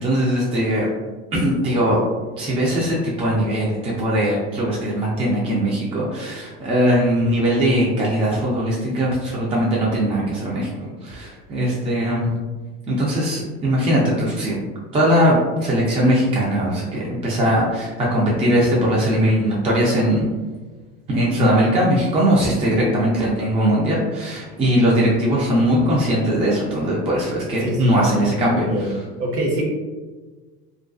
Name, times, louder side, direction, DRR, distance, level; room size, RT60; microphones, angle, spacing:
voice 1, 0.0-0.9 1.3-2.0 2.4-12.3 12.9-14.6 14.9-20.3 21.1-28.7, equal, 20° right, -5 dB, 0.4 m, -20 dB
voice 2, 27.6-28.9 29.2-29.6, right 1 dB, 45° right, -2 dB, 0.8 m, -25 dB
2.4 x 2.2 x 2.4 m, 1.3 s
supercardioid pair, 100°, 33 cm